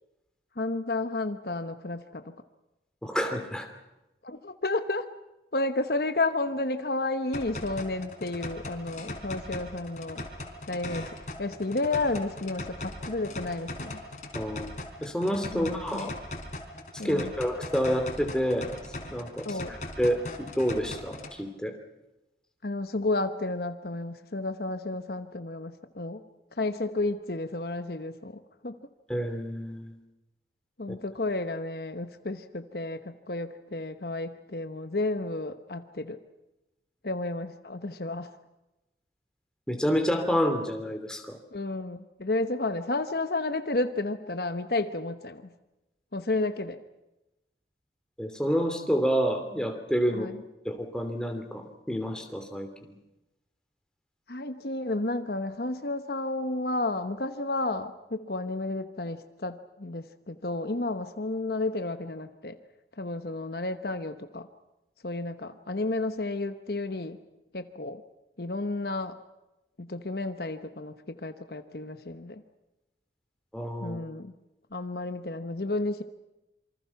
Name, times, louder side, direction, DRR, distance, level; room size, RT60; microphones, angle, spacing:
voice 1, 0.6-2.3 4.2-5.1 5.5-10.2 10.7-14.0 15.5-16.1 17.0-17.3 19.4-19.8 22.6-26.2 26.5-28.8 30.8-36.2 37.0-38.3 41.5-45.4 46.1-46.8 50.1-50.4 54.3-62.6 63.0-64.5 65.0-67.2 67.5-68.0 68.4-69.2 69.8-72.4 73.8-74.3 74.7-76.0, left 2 dB, 60° left, 9 dB, 1.1 m, -32 dB
voice 2, 3.0-3.7 14.3-14.7 15.0-16.1 17.0-18.7 19.1-21.8 29.1-29.9 39.7-41.4 48.2-50.3 50.6-52.9 73.5-74.0, equal, 5° left, 5 dB, 2.9 m, -29 dB
sound 1, 7.3-21.3, left 1 dB, 40° left, 4.1 m, -39 dB
27.0 x 25.0 x 5.9 m, 0.97 s
head